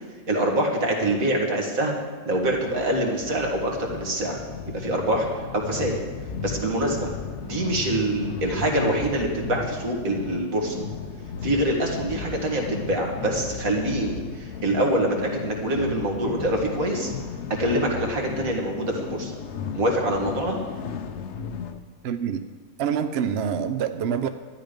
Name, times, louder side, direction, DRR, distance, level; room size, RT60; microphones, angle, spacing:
voice 1, 0.3-4.4 4.7-6.0 6.4-7.1 7.4-10.8 11.4-17.1 17.6-19.4 19.7-20.6, right 1 dB, 80° right, 0 dB, 2.4 m, -25 dB
sound 1, 2.3-21.8, left 6 dB, 60° left, 1.0 m, -35 dB
voice 2, 22.0-22.4 22.8-24.3, right 8 dB, 60° right, 9 dB, 0.8 m, -26 dB
12.5 x 10.5 x 5.2 m, 1.5 s
omnidirectional pair, 1.4 m